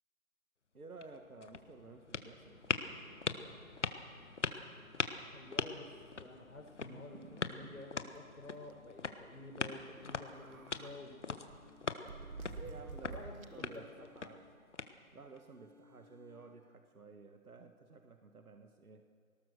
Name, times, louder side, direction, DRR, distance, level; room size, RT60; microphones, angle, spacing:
voice 1, 0.7-3.7 12.5-14.5 15.1-19.0, right 3 dB, 90° right, 5 dB, 1.7 m, -54 dB
sound 1, 0.8-15.4, left 4 dB, 55° left, 1.4 m, -43 dB
voice 2, 5.3-5.9 6.2-11.4 11.8-12.1 13.1-14.1, left 2 dB, 80° left, 1 dB, 4.8 m, -51 dB
sound 2, 6.8-7.8 8.1-8.2 8.5-8.7 9.9-11.0 11.5-13.8, right 4 dB, 75° right, 1.4 m, -50 dB
sound 3, 10.2-10.9 11.4-12.9 13.3-14.9 15.3-16.8, left 3 dB, 35° right, 4.4 m, -65 dB
21.5 x 18.5 x 6.8 m, 2.1 s
figure-of-eight pair, 170°, 42 cm